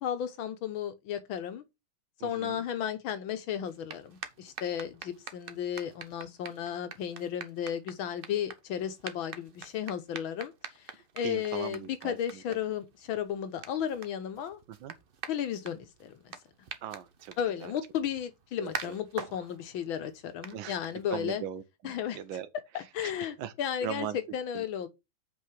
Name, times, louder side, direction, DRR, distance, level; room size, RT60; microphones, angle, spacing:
voice 1, 0.0-1.6 2.2-14.6 15.3-16.3 17.4-21.4 21.8-22.2 22.7-24.9, left 9 dB, 80° left, 1.8 m, -34 dB
voice 2, 2.2-2.6 11.2-12.6 14.7-14.9 16.8-17.7 18.6-19.0 20.5-20.8 21.1-22.5 22.8-23.5 23.8-24.2 24.5-24.7, right 10 dB, 75° right, 1.5 m, -40 dB
sound 1, 3.6-21.4, right 6 dB, 60° right, 0.5 m, -46 dB
5.7 x 5.0 x 6.4 m
omnidirectional pair, 2.2 m